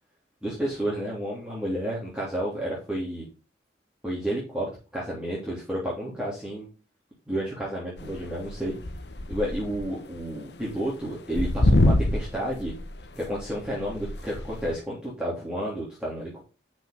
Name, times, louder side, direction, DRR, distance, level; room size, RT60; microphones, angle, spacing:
voice 1, 0.4-3.3 4.0-6.7 7.3-8.7 9.3-12.7 13.1-16.4, right 1 dB, 5° right, -7 dB, 3.4 m, -31 dB
sound 1, 8.0-9.9 10.2-10.3 10.7-10.8 11.3-14.7, left 1 dB, 70° left, 1.1 m, -25 dB
12.0 x 5.4 x 4.0 m, 0.32 s
head